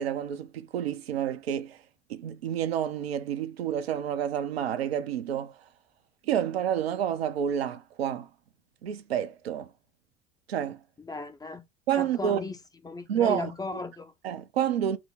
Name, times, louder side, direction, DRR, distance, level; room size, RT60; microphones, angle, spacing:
voice 1, 0.0-1.8 2.1-5.5 6.3-8.3 8.8-9.7 10.5-10.8 11.9-12.4 13.1-13.5 14.2-15.0, right 9 dB, 75° right, 0.6 m, -29 dB
voice 2, 11.0-11.6 12.0-12.6 12.8-14.1, left 3 dB, 10° left, 0.5 m, -36 dB
4.4 x 2.0 x 3.8 m
figure-of-eight pair, 70°, 31 cm